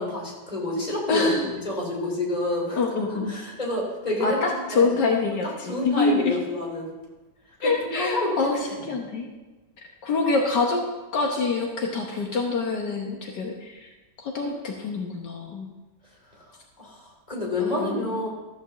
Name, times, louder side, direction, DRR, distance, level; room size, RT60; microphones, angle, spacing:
voice 1, 0.0-2.8 3.3-4.9 5.7-6.9 7.6-8.8 16.8-18.3, left 1 dB, 20° left, -3 dB, 3.3 m, -28 dB
voice 2, 1.1-1.5 2.7-3.3 4.2-6.3 7.6-8.6 8.9-9.3 10.0-10.8 11.1-13.9 14.2-15.7 17.6-18.1, left 3 dB, 75° left, 1 dB, 1.7 m, -25 dB
13.5 x 5.4 x 6.9 m, 1.1 s
omnidirectional pair, 1.8 m